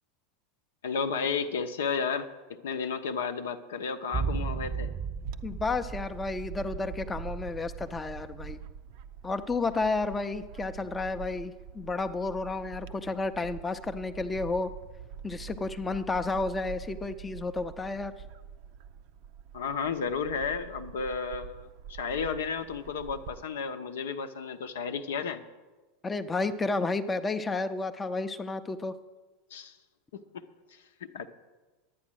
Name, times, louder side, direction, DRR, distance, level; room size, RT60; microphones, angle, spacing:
voice 1, 0.8-4.9 19.5-25.4 29.5-29.7 30.1-30.4 31.0-31.3, left 5 dB, 70° left, 8 dB, 0.7 m, -33 dB
sound 1, 4.1-8.4 8.6-8.7, right 5 dB, 15° right, 0.7 m, -35 dB
Bird / Wind, 5.2-23.4, right 8 dB, 55° right, 0.5 m, -45 dB
voice 2, 5.4-8.6 9.2-14.7 15.2-18.1 26.0-28.9, left 3 dB, 15° left, 8 dB, 0.6 m, -31 dB
11.5 x 8.9 x 6.3 m, 1.3 s
figure-of-eight pair, 85°, 0 cm